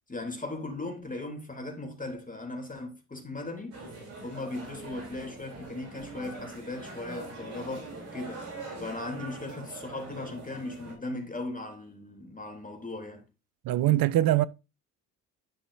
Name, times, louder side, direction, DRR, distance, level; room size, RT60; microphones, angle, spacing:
voice 1, 0.1-3.8 4.2-8.5 8.8-13.3 13.7-13.9, left 2 dB, 20° left, 3.1 m, -38 dB
sound 1, 3.7-10.9, right 2 dB, 85° right, 3.4 m, -43 dB
voice 2, 13.6-14.4, right 14 dB, 55° right, 0.7 m, -22 dB
10.5 x 6.2 x 2.6 m
hypercardioid pair, 60°, 44 cm